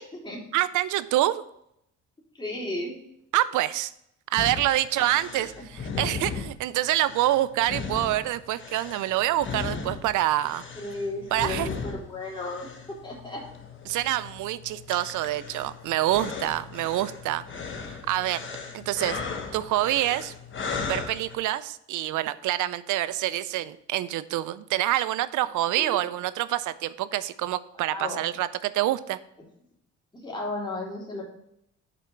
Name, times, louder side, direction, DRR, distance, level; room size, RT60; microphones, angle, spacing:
voice 1, 0.0-0.4 2.4-3.0 5.0-5.1 10.7-12.7 13.0-13.4 25.8-26.0 27.9-28.2 30.2-31.2, left 2 dB, 15° left, -4 dB, 3.2 m, -34 dB
voice 2, 0.5-1.4 3.3-3.9 4.3-10.6 11.3-11.7 13.9-17.4 17.9-18.5 18.7-19.2 19.5-20.3 20.8-29.2, right 14 dB, 80° right, 16 dB, 0.5 m, -26 dB
sound 1, 4.4-21.4, left 5 dB, 40° left, 1.2 m, -37 dB
6.9 x 4.4 x 6.1 m, 0.76 s
cardioid pair, 90°, 30 cm